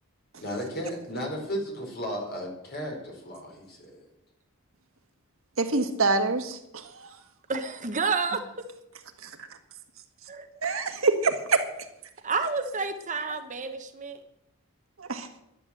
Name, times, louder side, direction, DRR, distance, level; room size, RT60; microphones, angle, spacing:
voice 1, 0.4-4.1, equal, 50° left, 0 dB, 4.7 m, -34 dB
voice 2, 5.6-7.1 10.6-11.6 15.0-15.3, right 3 dB, 70° right, 5 dB, 1.7 m, -25 dB
voice 3, 7.5-8.4 10.3-10.5 12.2-14.2, right 4 dB, 35° right, 7 dB, 1.1 m, -29 dB
11.0 x 11.0 x 7.7 m, 0.83 s
head